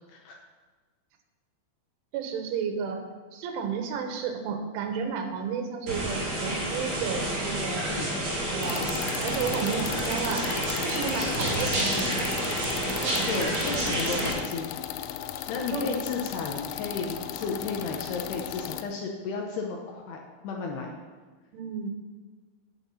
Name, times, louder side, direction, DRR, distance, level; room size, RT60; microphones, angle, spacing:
voice 1, 2.1-3.1 3.3-7.9 8.5-8.9 9.2-10.5 10.8-12.3 13.0-13.6 14.1-14.4 15.7-15.9 21.5-21.9, right 6 dB, 80° right, 5 dB, 3.6 m, -32 dB
sound 1, 5.9-14.3, right 1 dB, 40° right, 4.1 m, -29 dB
sound 2, 8.6-18.8, left 11 dB, 90° left, 3.2 m, -36 dB
voice 2, 13.3-14.7 15.5-21.0, left 4 dB, 75° left, 1 dB, 2.6 m, -33 dB
10.0 x 9.0 x 5.6 m, 1.4 s
omnidirectional pair, 5.5 m